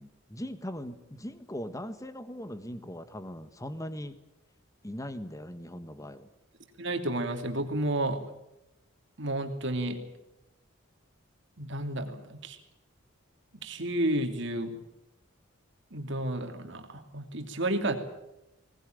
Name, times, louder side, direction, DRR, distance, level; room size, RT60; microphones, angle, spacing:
voice 1, 0.0-4.2 4.8-6.3, equal, 15° left, 11 dB, 1.4 m, -40 dB
voice 2, 6.8-8.2 9.2-10.0 11.6-12.6 13.6-14.7 15.9-17.9, right 1 dB, 60° right, 5 dB, 2.8 m, -31 dB
21.0 x 19.5 x 9.2 m, 0.89 s
head